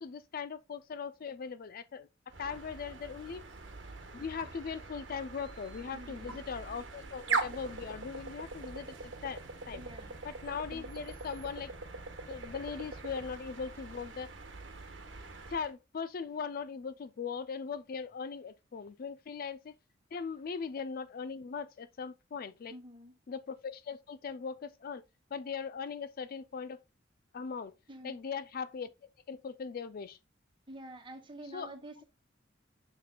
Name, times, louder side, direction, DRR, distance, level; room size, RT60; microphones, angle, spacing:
voice 1, 0.0-2.1 2.4-3.4 4.1-9.4 9.7-9.8 10.2-11.7 12.3-14.3 15.5-19.7 20.1-22.7 23.3-25.0 25.3-26.8 27.3-27.7 28.0-30.2 31.5-31.7, left 6 dB, 50° left, 0.4 m, -40 dB
sound 1, 2.3-15.7, right 4 dB, 75° right, 1.2 m, -42 dB
voice 2, 5.9-6.4 9.8-10.2 22.7-23.1 27.9-28.2 30.7-32.0, right 1 dB, 25° right, 1.3 m, -48 dB
6.7 x 6.6 x 2.2 m
head